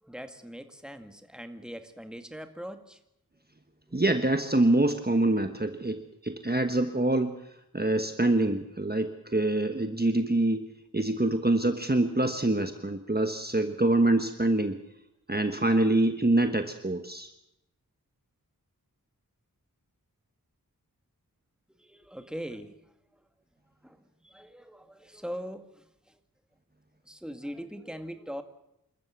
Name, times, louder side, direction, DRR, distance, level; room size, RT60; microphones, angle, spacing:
voice 1, 0.0-3.0 3.9-4.0 21.8-22.8 23.8-26.2 27.1-28.4, equal, ahead, 8 dB, 2.0 m, -41 dB
voice 2, 3.9-7.3 7.7-14.8 15.3-17.3, right 2 dB, 25° right, 7 dB, 1.3 m, -25 dB
27.0 x 14.0 x 8.3 m, 0.82 s
wide cardioid pair, 45°, 36 cm